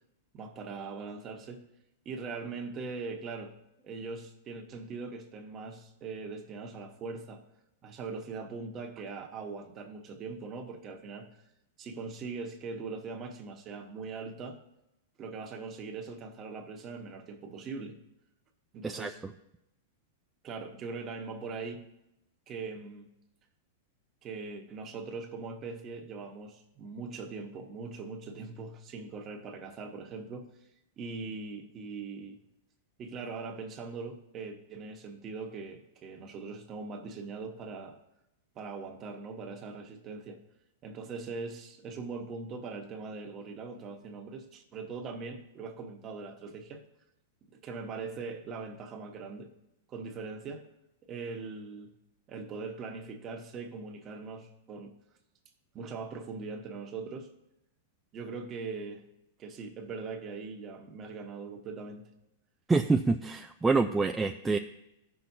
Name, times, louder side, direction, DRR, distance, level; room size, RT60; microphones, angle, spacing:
voice 1, 0.3-1.7 2.0-3.5 3.8-7.4 7.8-11.3 11.8-14.6 15.2-18.0 18.7-19.2 20.4-21.8 22.5-23.1 24.2-30.5 31.0-32.4 33.0-38.0 38.5-40.4 40.8-46.8 47.6-49.5 49.9-50.7 51.1-51.9 52.3-54.9 55.7-57.3 58.1-59.0 59.4-62.1, right 4 dB, 30° right, 3 dB, 1.2 m, -41 dB
voice 2, 62.7-64.6, right 3 dB, 10° right, 5 dB, 0.4 m, -26 dB
14.5 x 5.9 x 2.7 m, 0.88 s
hypercardioid pair, 125°, 0 cm